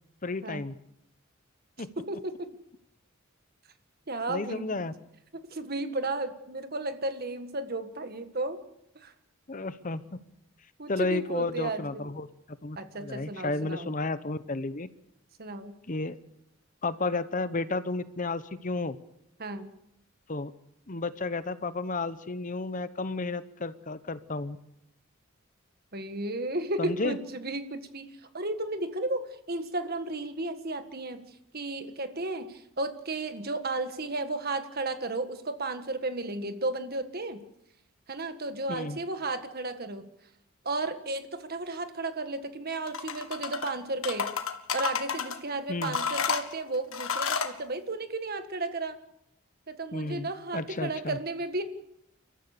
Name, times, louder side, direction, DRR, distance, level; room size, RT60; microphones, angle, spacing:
voice 1, 0.2-0.7 1.8-1.9 4.3-4.9 9.5-10.0 10.9-14.9 15.9-16.2 16.8-19.0 20.3-20.5 20.9-24.6 26.8-27.2 38.7-39.0 45.7-46.0 49.9-51.2, left 3 dB, 40° left, 13 dB, 0.9 m, -32 dB
voice 2, 2.0-2.5 4.1-4.6 5.3-8.6 8.9-9.1 10.8-12.1 12.8-13.9 15.4-15.7 19.4-19.7 25.9-31.2 31.5-37.4 38.1-40.1 40.6-44.3 44.7-49.0 49.7-51.6, right 2 dB, 50° right, 9 dB, 1.7 m, -34 dB
sound 1, 42.9-43.7 44.0-45.4 45.8-47.6, left 6 dB, 85° left, 1.8 m, -31 dB
29.5 x 14.0 x 6.8 m, 0.81 s
head